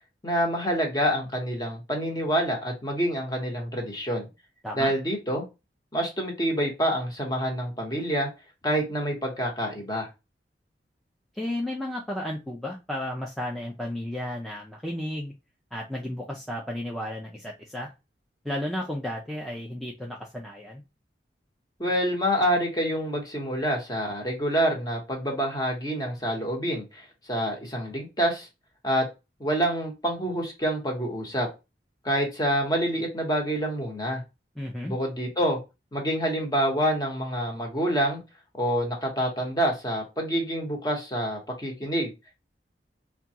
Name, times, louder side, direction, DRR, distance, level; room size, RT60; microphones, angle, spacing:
voice 1, 0.2-4.3 4.7-5.4 5.9-8.3 8.6-10.1 21.8-28.5 28.8-29.0 29.4-31.5 32.0-34.2 34.8-35.6 35.9-38.2 38.6-42.1, equal, 20° left, 1 dB, 1.0 m, -27 dB
voice 2, 11.3-15.3 15.7-17.9 18.4-20.8 34.6-34.9, left 1 dB, ahead, -2 dB, 0.4 m, -33 dB
3.6 x 2.3 x 2.7 m, 0.25 s
head